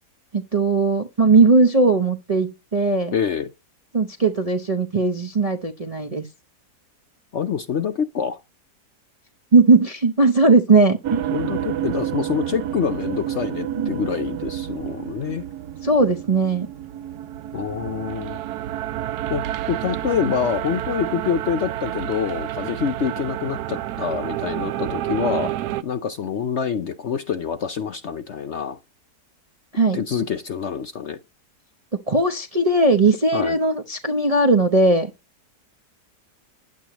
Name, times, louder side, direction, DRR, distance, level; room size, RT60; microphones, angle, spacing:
voice 1, 0.3-3.1 3.9-6.3 9.5-11.2 13.7-13.9 15.8-16.7 29.7-30.0 32.1-35.1, right 3 dB, 35° right, 0.6 m, -18 dB
voice 2, 3.1-3.5 7.3-8.4 11.3-15.4 17.5-18.4 19.3-25.5 25.8-28.8 29.9-31.2 33.3-33.6, left 7 dB, 55° left, 0.8 m, -26 dB
sound 1, 11.0-25.8, right 12 dB, 75° right, 1.2 m, -29 dB
10.5 x 8.5 x 3.0 m
omnidirectional pair, 1.8 m